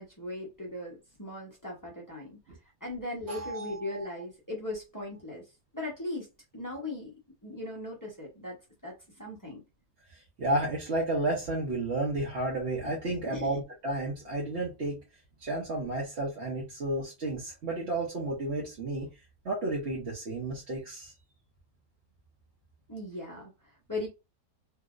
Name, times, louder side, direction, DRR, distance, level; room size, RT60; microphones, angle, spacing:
voice 1, 0.0-2.4 2.8-5.5 5.7-6.3 6.5-7.1 7.4-8.6 8.8-9.6 12.8-12.9 13.2-13.6 22.9-24.1, left 2 dB, 20° left, 0.6 m, -38 dB
voice 2, 3.3-4.1 10.1-15.0 15.4-21.1, right 2 dB, 45° right, 1.0 m, -32 dB
3.2 x 2.8 x 2.4 m
omnidirectional pair, 1.9 m